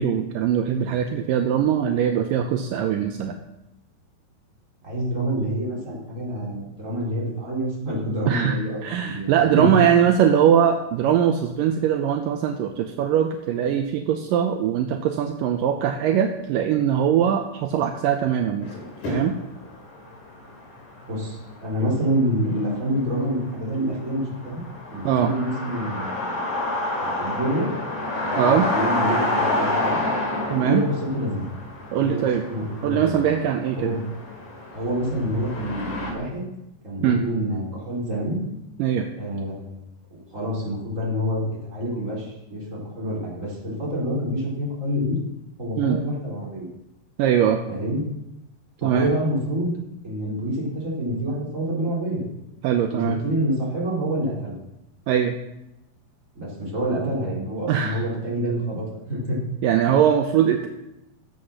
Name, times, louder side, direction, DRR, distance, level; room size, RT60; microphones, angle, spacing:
voice 1, 0.0-3.3 8.3-18.7 19.1-19.3 25.0-25.3 28.4-28.7 30.5-30.8 31.9-32.5 32.8-33.9 37.0-37.2 38.8-39.1 45.8-46.0 47.2-47.6 48.8-49.1 52.6-53.2 55.1-55.3 57.7-58.0 59.6-60.7, right 9 dB, 75° right, 4 dB, 2.0 m, -21 dB
voice 2, 4.8-9.7 21.1-24.6 24.9-26.4 27.0-27.7 28.2-30.0 30.6-31.4 32.0-32.2 32.5-33.2 33.8-34.0 34.7-36.4 36.8-38.4 39.2-45.2 45.6-46.7 47.7-48.0 48.8-49.8 50.0-52.2 52.9-54.5 56.3-59.4, equal, 20° right, -5 dB, 4.1 m, -27 dB
sound 1, 18.6-36.1, left 2 dB, 50° left, 4.1 m, -29 dB
16.5 x 7.8 x 6.5 m, 0.90 s
omnidirectional pair, 4.8 m